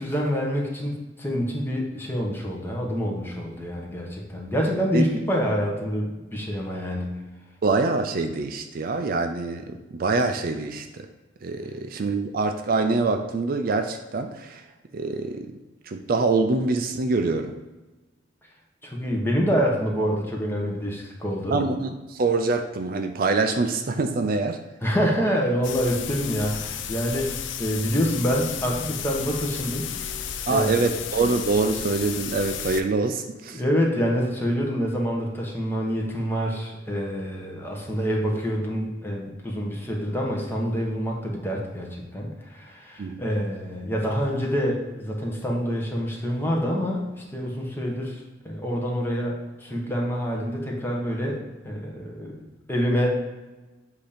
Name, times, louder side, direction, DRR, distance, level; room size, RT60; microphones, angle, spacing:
voice 1, 0.0-7.1 18.8-21.6 24.8-29.9 30.5-30.8 33.5-53.1, equal, 10° left, -1 dB, 1.1 m, -27 dB
voice 2, 7.6-11.1 11.4-14.6 14.9-15.5 15.9-17.5 21.5-24.6 30.5-33.6 43.0-43.2, right 3 dB, 50° right, 6 dB, 0.4 m, -25 dB
sound 1, 25.6-32.8, left 8 dB, 90° left, 0.5 m, -33 dB
7.8 x 2.8 x 5.0 m, 1.1 s
head